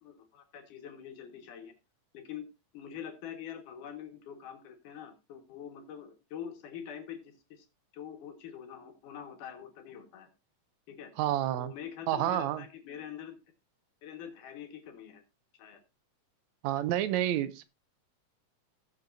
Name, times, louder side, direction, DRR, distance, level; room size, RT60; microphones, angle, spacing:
voice 1, 0.0-1.7 2.1-2.5 2.7-7.7 7.9-10.3 10.9-11.1 11.6-13.4 14.0-15.2 15.6-15.8, left 9 dB, 80° left, 5 dB, 3.1 m, -45 dB
voice 2, 11.2-11.7 12.1-12.6 16.6-17.6, right 12 dB, 75° right, 14 dB, 1.8 m, -29 dB
18.0 x 6.8 x 2.6 m, 0.26 s
omnidirectional pair, 3.6 m